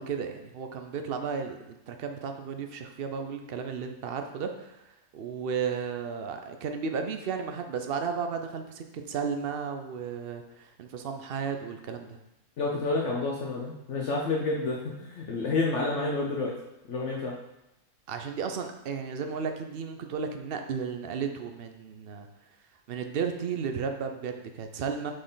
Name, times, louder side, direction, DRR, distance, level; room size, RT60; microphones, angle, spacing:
voice 1, 0.0-4.8 5.1-12.2 18.1-22.3 22.9-25.1, right 6 dB, 60° right, 6 dB, 0.6 m, -34 dB
voice 2, 12.6-16.6 16.9-17.4, left 3 dB, 55° left, -2 dB, 1.0 m, -29 dB
7.7 x 4.2 x 3.8 m, 0.89 s
omnidirectional pair, 1.6 m